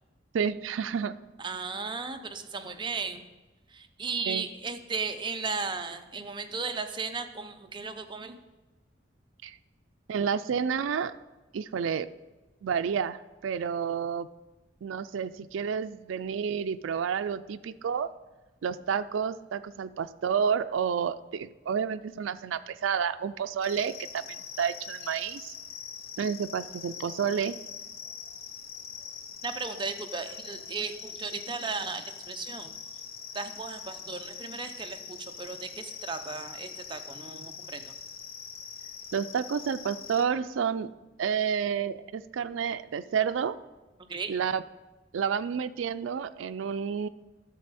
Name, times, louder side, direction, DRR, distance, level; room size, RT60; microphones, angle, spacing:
voice 1, 0.3-1.2 4.3-4.4 9.4-9.6 10.1-11.1 11.5-12.1 12.6-14.3 14.8-18.1 18.6-25.5 26.2-27.6 39.1-40.9 41.2-43.6 44.3-44.6 45.1-47.1, right 7 dB, 85° right, 12 dB, 0.4 m, -30 dB
voice 2, 1.4-3.2 3.7-8.4 29.4-32.7 33.3-38.0 44.1-44.3, right 4 dB, 25° right, 6 dB, 0.6 m, -35 dB
sound 1, 23.6-40.2, left 7 dB, 50° left, 0.8 m, -43 dB
11.0 x 6.9 x 4.2 m, 1.1 s
head